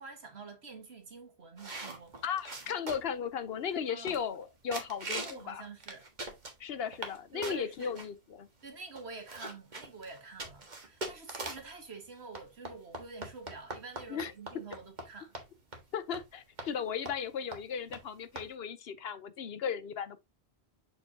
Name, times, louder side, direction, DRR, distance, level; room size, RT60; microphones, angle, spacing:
voice 1, 0.0-2.2 3.9-4.2 5.1-6.1 7.3-7.9 8.6-15.3, right 4 dB, 80° right, 1.9 m, -47 dB
sound 1, 1.6-3.2 3.7-3.8 4.1-4.4 4.7-5.4 5.8-7.2 7.4-8.1 8.7-8.8 8.9-11.7 12.3-15.1 15.3-15.5 15.7-15.8 16.1-16.3 16.6-16.7 17.1-17.3 17.5-17.6 17.9-18.0 18.4-18.5, right 2 dB, 45° right, 1.6 m, -41 dB
voice 2, 2.2-5.6 6.6-8.5 14.1-14.3 15.9-20.2, left 7 dB, 70° left, 0.9 m, -36 dB
6.9 x 5.4 x 2.7 m
omnidirectional pair, 1.1 m